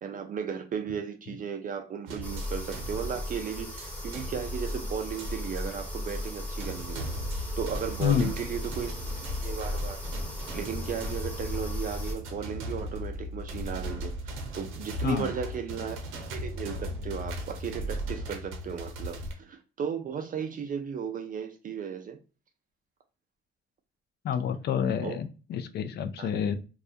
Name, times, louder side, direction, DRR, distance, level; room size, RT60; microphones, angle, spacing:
voice 1, 0.0-7.1 7.6-8.9 9.4-10.1 10.5-16.0 16.3-22.2 25.0-25.2 26.2-26.3, right 7 dB, 45° right, 0.4 m, -35 dB
sound 1, 2.1-19.3, equal, 85° right, 0.6 m, -38 dB
sound 2, 2.2-12.1, left 1 dB, 10° left, 1.0 m, -36 dB
voice 2, 8.0-8.3 15.0-15.3 24.2-26.6, left 8 dB, 55° left, 0.4 m, -28 dB
2.3 x 2.1 x 2.6 m
cardioid pair, 90°, 20 cm